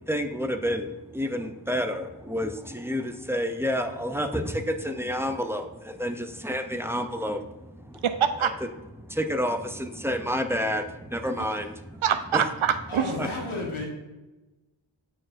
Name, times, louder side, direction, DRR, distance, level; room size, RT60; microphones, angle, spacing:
voice 1, 0.0-7.5 7.9-8.0 9.1-12.0 12.3-12.4 13.2-13.3, equal, 5° right, 5 dB, 0.3 m, -29 dB
voice 2, 8.0-8.5 11.4-11.5 12.0-13.1, right 8 dB, 85° right, 10 dB, 0.6 m, -24 dB
voice 3, 12.9-13.9, left 2 dB, 85° left, -2 dB, 1.3 m, -32 dB
8.5 x 4.4 x 2.5 m, 1.1 s
wide cardioid pair, 95°, 47 cm